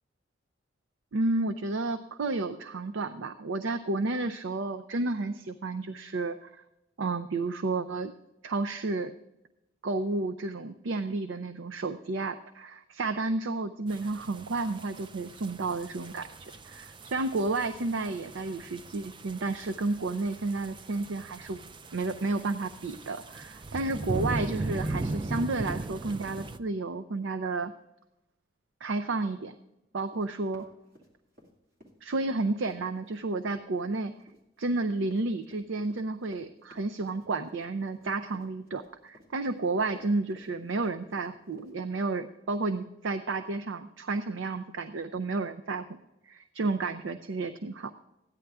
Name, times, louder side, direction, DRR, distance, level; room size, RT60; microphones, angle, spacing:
voice 1, 1.1-6.6 7.0-8.1 8.4-9.1 9.8-21.6 21.9-27.7 28.8-29.5 29.9-30.7 32.0-34.1 34.6-46.0 46.3-47.9, right 3 dB, 85° right, 9 dB, 0.5 m, -31 dB
sound 1, 13.9-26.6, right 2 dB, 25° right, 0.4 m, -38 dB
Run, 30.1-31.5 31.8-41.7, left 1 dB, 50° right, 2.3 m, -56 dB
14.5 x 10.0 x 3.4 m, 0.92 s
head